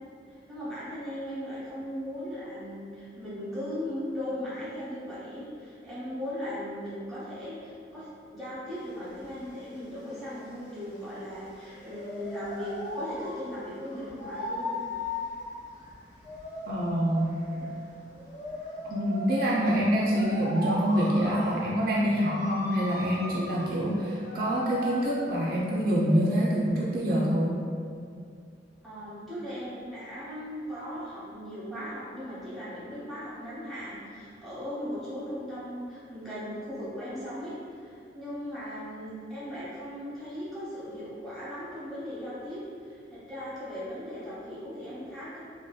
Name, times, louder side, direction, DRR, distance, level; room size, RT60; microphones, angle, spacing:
voice 1, 0.3-14.7 28.8-42.6 42.9-45.4, equal, ahead, -11 dB, 0.7 m, -38 dB
sound 1, 8.7-26.7, left 1 dB, 45° left, 0.8 m, -39 dB
voice 2, 16.7-17.4 18.9-27.6, equal, 55° right, -5 dB, 0.3 m, -26 dB
2.6 x 2.1 x 2.3 m, 2.3 s
head